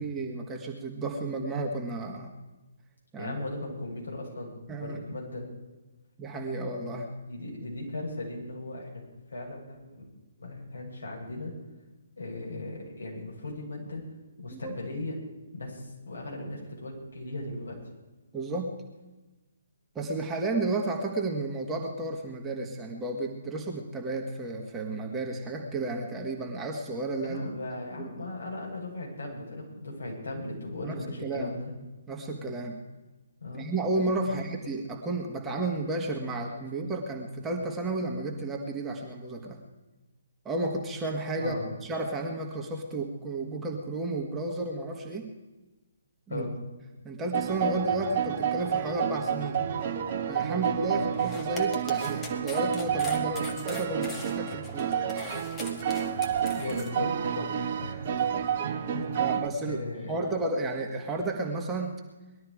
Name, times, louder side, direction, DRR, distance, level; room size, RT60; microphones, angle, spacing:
voice 1, 0.0-2.3 3.1-3.3 4.7-5.0 6.2-7.1 14.5-14.8 18.3-18.8 20.0-27.5 28.0-28.3 30.8-31.5 32.1-32.8 33.5-39.6 40.5-45.3 46.3-46.5 47.0-49.6 49.9-50.0 50.3-54.9 59.2-59.8 60.1-62.0, right 2 dB, 10° right, 0 dB, 1.8 m, -32 dB
voice 2, 3.2-5.4 7.3-9.0 9.3-10.0 10.4-11.5 12.2-14.0 14.4-15.1 15.5-17.8 27.2-31.7 33.4-33.7 34.3-34.4 41.4-41.7 46.3-46.5 50.9-51.1 56.5-58.2 58.9-59.2 59.6-60.2, left 2 dB, 70° left, -3 dB, 7.4 m, -37 dB
sound 1, 47.3-59.5, right 8 dB, 40° right, 1.4 m, -30 dB
sound 2, 51.1-56.9, left 2 dB, 15° left, 1.8 m, -41 dB
20.5 x 12.5 x 4.9 m, 1.1 s
figure-of-eight pair, 135°, 0 cm